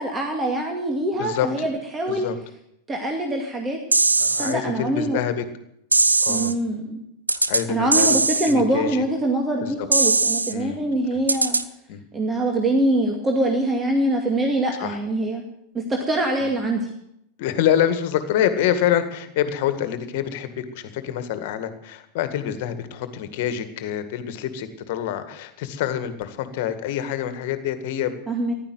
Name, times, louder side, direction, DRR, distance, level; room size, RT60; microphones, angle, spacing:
voice 1, 0.0-2.3 2.9-3.8 4.4-5.2 6.3-7.0 7.7-11.6 12.1-15.4 15.7-16.9 28.3-28.5, right 1 dB, 15° right, 2 dB, 2.2 m, -24 dB
voice 2, 1.1-1.7 2.1-2.4 4.2-5.5 6.2-6.5 7.5-8.2 8.5-9.0 9.6-9.7 10.5-10.8 11.9-12.0 14.8-15.0 16.4-16.5 17.4-28.1, left 10 dB, 50° left, 10 dB, 1.9 m, -26 dB
sound 1, 3.9-4.5 5.9-6.5 7.3-7.6 7.9-8.5 9.9-10.5 11.3-11.6, right 3 dB, 80° right, 0.8 m, -19 dB
15.0 x 11.5 x 7.9 m, 0.78 s
figure-of-eight pair, 90°, 0 cm